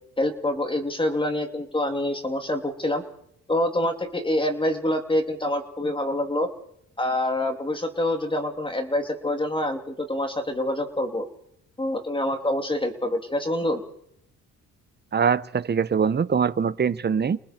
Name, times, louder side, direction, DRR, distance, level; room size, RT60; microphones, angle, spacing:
voice 1, 0.2-3.0 3.5-6.5 7.0-11.3 11.8-13.8, left 1 dB, 15° left, 5 dB, 2.9 m, -26 dB
voice 2, 15.1-17.4, right 6 dB, 35° right, 17 dB, 1.0 m, -23 dB
29.5 x 29.0 x 4.5 m, 0.71 s
cardioid pair, 90°, 30 cm